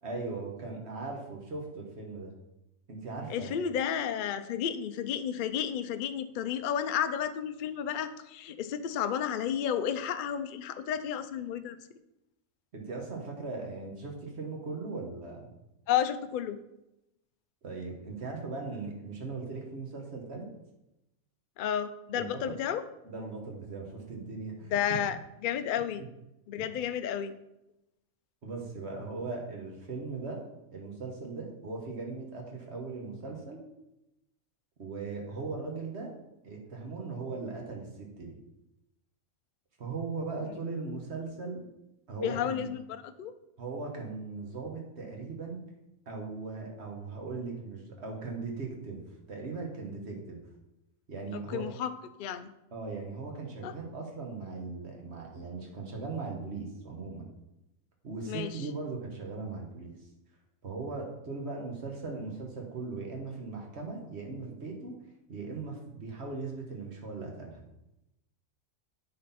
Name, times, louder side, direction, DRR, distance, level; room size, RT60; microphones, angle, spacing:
voice 1, 0.0-2.3 2.9-3.5 12.7-15.5 17.6-20.4 22.1-22.5 23.0-25.0 26.0-26.1 26.6-26.8 28.4-30.5 30.7-33.6 34.8-36.1 36.4-38.4 39.8-41.6 42.1-42.7 43.6-45.6 46.1-49.0 49.3-50.4 51.1-51.7 52.7-57.3 58.0-59.9 60.6-64.9 65.3-67.6, right 4 dB, 55° right, 0 dB, 1.6 m, -39 dB
voice 2, 3.3-11.8 15.9-16.6 21.6-22.8 24.7-25.2 25.4-26.0 26.5-27.3 42.2-43.3 51.3-51.9 52.2-52.5 53.6-53.7 58.3-58.5, left 9 dB, 70° left, 10 dB, 0.4 m, -32 dB
9.4 x 4.1 x 4.1 m, 0.90 s
omnidirectional pair, 1.4 m